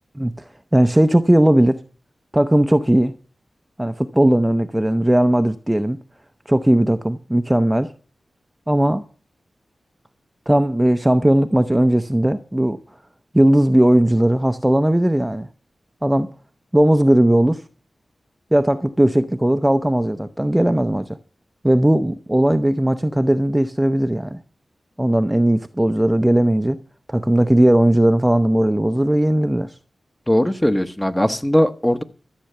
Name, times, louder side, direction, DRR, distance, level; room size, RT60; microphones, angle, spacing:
voice 1, 0.7-1.8 2.3-3.1 3.8-6.0 6.5-7.9 8.7-9.0 10.5-12.8 13.3-15.5 16.0-16.3 16.7-17.6 18.5-21.2 21.6-24.4 25.0-26.8 27.1-29.7, right 1 dB, 10° right, 0.6 m, -17 dB
voice 2, 30.3-32.0, equal, 10° left, 1.1 m, -19 dB
13.5 x 8.2 x 6.7 m
wide cardioid pair, 90°, 0 cm